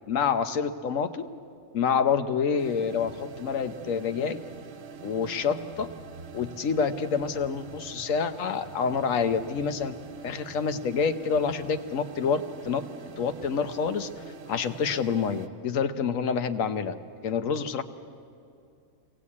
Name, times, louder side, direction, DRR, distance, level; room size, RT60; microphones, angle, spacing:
voice 1, 0.1-1.2 1.7-4.4 5.0-5.9 6.3-9.9 10.2-12.8 13.2-14.1 14.5-16.9 17.2-17.8, left 6 dB, 65° left, 10 dB, 1.3 m, -27 dB
sound 1, 2.6-15.5, right 5 dB, 60° right, 1.3 m, -45 dB
23.5 x 18.0 x 8.5 m, 2.6 s
omnidirectional pair, 1.5 m